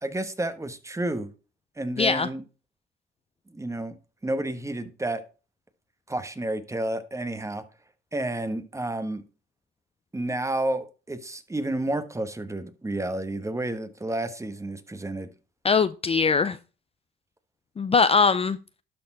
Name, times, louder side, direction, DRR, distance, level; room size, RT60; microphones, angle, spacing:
voice 1, 0.0-1.3 1.8-2.4 3.5-4.0 4.2-5.2 6.1-7.6 8.1-9.2 10.1-15.3, right 1 dB, 15° right, 1.3 m, -30 dB
voice 2, 2.0-2.3 15.6-16.6 17.8-18.6, left 5 dB, 30° left, 0.5 m, -21 dB
12.0 x 4.4 x 3.9 m
cardioid pair, 90°, 20 cm